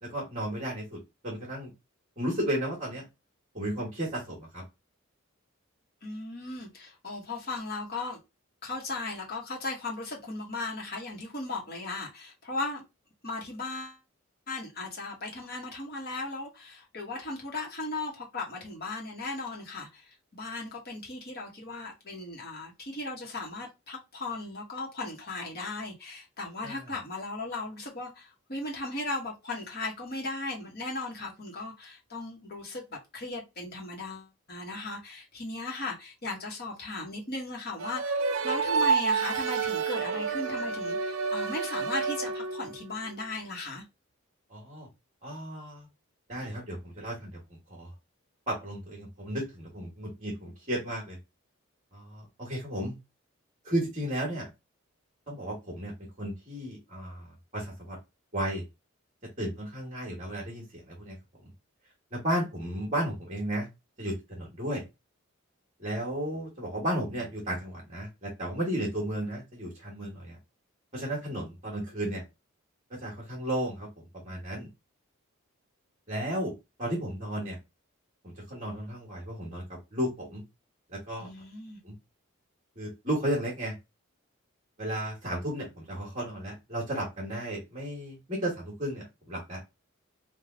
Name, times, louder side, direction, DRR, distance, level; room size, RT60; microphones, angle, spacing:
voice 1, 0.0-0.9 1.2-1.7 2.2-3.0 3.5-4.6 26.6-26.9 44.5-44.9 45.2-45.9 46.3-47.4 47.7-47.9 48.5-51.2 51.9-53.0 53.6-54.5 55.3-57.3 57.5-58.0 58.3-58.6 59.4-61.1 61.4-61.5 62.1-63.7 64.0-64.8 65.8-70.4 70.9-72.2 73.0-73.9 74.2-74.7 76.1-76.5 76.8-77.6 78.2-80.4 80.9-81.3 81.8-81.9 82.8-83.7 84.8-89.6, right 1 dB, 35° right, 1.4 m, -34 dB
voice 2, 6.0-8.2 8.6-12.8 13.2-14.0 14.5-43.8 81.2-81.8, left 2 dB, 50° left, 1.1 m, -37 dB
sound 1, 37.8-42.8, right 5 dB, 75° right, 0.5 m, -29 dB
3.3 x 2.3 x 3.6 m
head